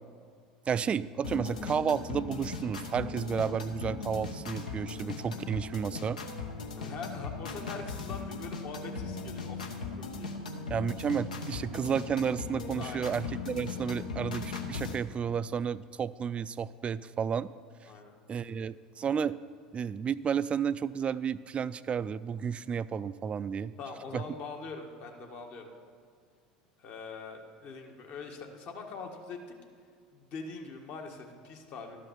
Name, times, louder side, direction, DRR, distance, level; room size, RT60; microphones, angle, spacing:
voice 1, 0.7-6.2 10.7-17.5 18.3-19.4 19.7-23.7 24.1-24.2, right 7 dB, 30° right, 17 dB, 0.3 m, -32 dB
sound 1, 1.2-15.0, left 4 dB, 80° left, 1.0 m, -38 dB
voice 2, 6.8-10.3 12.7-13.1 17.9-18.1 23.8-25.7 26.8-29.4 30.1-32.0, left 4 dB, 50° left, 2 dB, 1.5 m, -43 dB
12.5 x 5.6 x 7.0 m, 2.1 s
hypercardioid pair, 75°, 4 cm